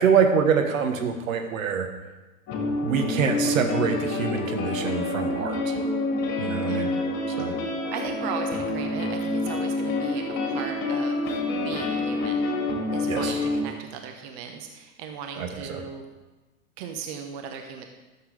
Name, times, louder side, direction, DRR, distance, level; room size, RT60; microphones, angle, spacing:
voice 1, 0.0-1.9 2.8-5.7 6.4-6.9 7.3-7.5 13.1-13.4 15.4-15.8, right 6 dB, 65° right, 5 dB, 1.2 m, -25 dB
sound 1, 2.5-13.6, left 2 dB, 40° left, 2.9 m, -27 dB
voice 2, 7.9-11.2 11.6-12.5 12.9-16.0 16.8-17.9, right 7 dB, 45° right, 5 dB, 1.1 m, -37 dB
12.5 x 7.2 x 3.4 m, 1.1 s
figure-of-eight pair, 100°, 44 cm